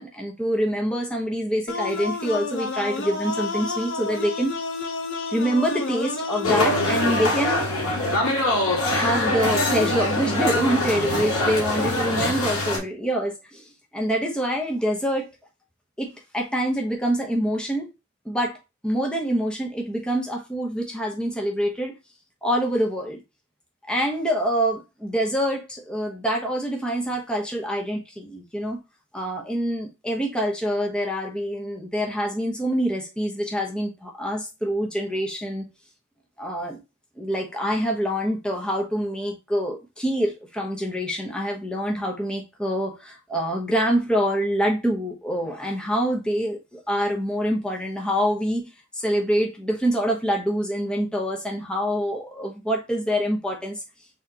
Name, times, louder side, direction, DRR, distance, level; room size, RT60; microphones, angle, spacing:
voice 1, 0.0-4.6 5.3-7.6 8.9-15.3 16.0-17.9 18.2-18.6 18.8-22.0 22.4-23.2 23.9-28.8 29.1-35.6 36.4-36.8 37.2-53.8, equal, 5° left, 0.9 m, -26 dB
sound 1, 1.7-7.7, left 3 dB, 60° left, 0.9 m, -30 dB
sound 2, 6.4-12.8, left 1 dB, 80° left, 2.1 m, -23 dB
4.3 x 3.6 x 2.9 m
head